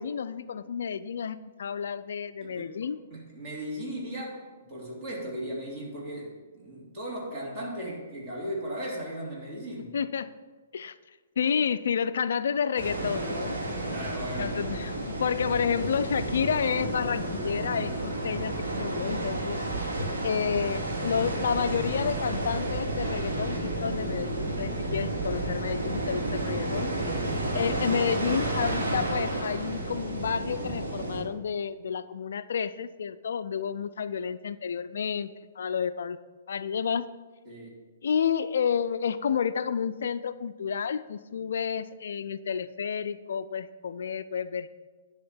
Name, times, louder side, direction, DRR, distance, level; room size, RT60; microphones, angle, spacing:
voice 1, 0.0-3.0 9.9-10.3 10.7-10.9 11.4-13.6 14.4-19.6 20.2-26.9 27.5-36.2 36.5-37.1 38.0-44.7, left 7 dB, 65° left, 13 dB, 0.3 m, -30 dB
voice 2, 2.4-10.0 13.9-14.5 37.4-37.8, equal, 35° right, -4 dB, 3.0 m, -37 dB
sound 1, 12.8-31.2, right 1 dB, 65° right, 2.2 m, -31 dB
10.5 x 3.6 x 7.2 m, 1.3 s
figure-of-eight pair, 125°, 0 cm